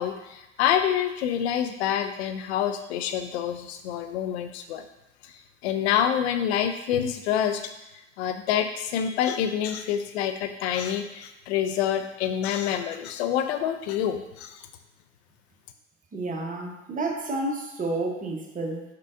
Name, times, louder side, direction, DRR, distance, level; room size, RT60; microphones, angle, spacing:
voice 1, 0.0-4.8 5.6-7.6 8.2-14.6, left 9 dB, 65° left, 8 dB, 0.6 m, -27 dB
voice 2, 16.1-18.8, right 2 dB, 20° right, 1 dB, 1.0 m, -30 dB
5.5 x 3.8 x 2.4 m, 0.97 s
figure-of-eight pair, 70°, 36 cm